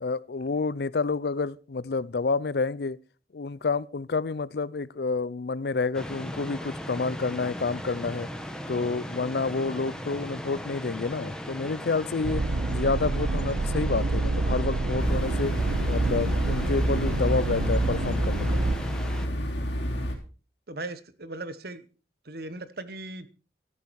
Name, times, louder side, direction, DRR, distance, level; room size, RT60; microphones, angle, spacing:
voice 1, 0.0-3.0 3.3-8.3 8.7-12.4 12.7-15.6 15.9-18.6, left 4 dB, 60° left, 0.5 m, -29 dB
sound 1, 5.9-19.3, equal, 5° left, 1.5 m, -37 dB
sound 2, 12.2-18.8, right 3 dB, 75° right, 0.6 m, -28 dB
sound 3, 15.0-20.2, equal, 75° left, 3.5 m, -30 dB
voice 2, 20.7-21.8 22.2-23.3, right 2 dB, 60° right, 1.1 m, -38 dB
13.5 x 11.5 x 4.7 m
head